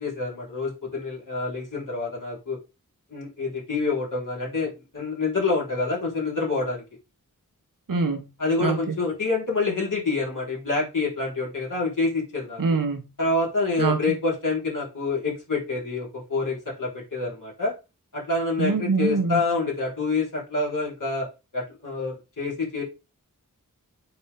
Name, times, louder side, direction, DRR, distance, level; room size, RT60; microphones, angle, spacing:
voice 1, 0.0-2.6 3.1-6.8 8.4-12.6 13.2-17.7 18.1-21.3 21.5-22.8, left 3 dB, 65° left, 4.2 m, -27 dB
voice 2, 7.9-8.3 8.6-8.9 12.6-13.1 13.8-14.0 18.6-19.4, right 4 dB, 70° right, 1.6 m, -24 dB
9.2 x 4.3 x 3.6 m
wide cardioid pair, 70°, 34 cm